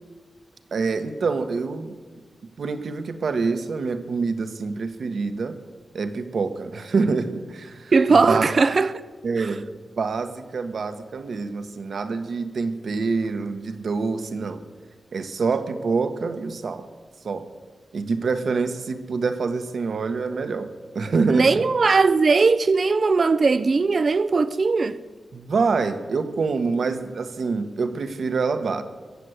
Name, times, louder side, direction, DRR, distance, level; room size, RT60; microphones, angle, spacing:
voice 1, 0.7-1.9 2.6-5.6 5.9-7.9 8.3-8.4 9.2-9.7 10.0-14.6 15.1-16.9 17.2-17.5 17.9-21.7 25.3-28.8, right 4 dB, 65° right, 1.2 m, -26 dB
voice 2, 7.9-9.0 9.4-9.5 21.3-25.0, right 4 dB, 45° right, 0.5 m, -19 dB
23.0 x 7.7 x 8.2 m
wide cardioid pair, 125°, 0 cm